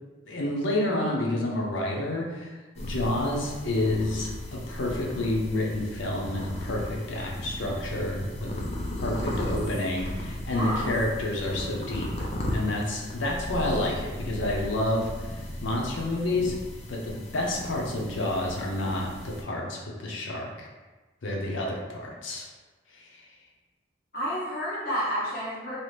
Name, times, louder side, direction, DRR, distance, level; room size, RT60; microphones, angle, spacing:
voice 1, 0.2-8.6 9.0-16.5 16.9-20.7 21.2-22.5 22.9-23.3, left 1 dB, 80° left, -1 dB, 0.6 m, -29 dB
sound 1, 2.7-19.4, left 1 dB, 35° left, 0.4 m, -36 dB
voice 2, 9.2-9.6 10.5-10.9 24.1-25.8, equal, 50° left, -7 dB, 1.0 m, -31 dB
2.8 x 2.4 x 3.3 m, 1.2 s
head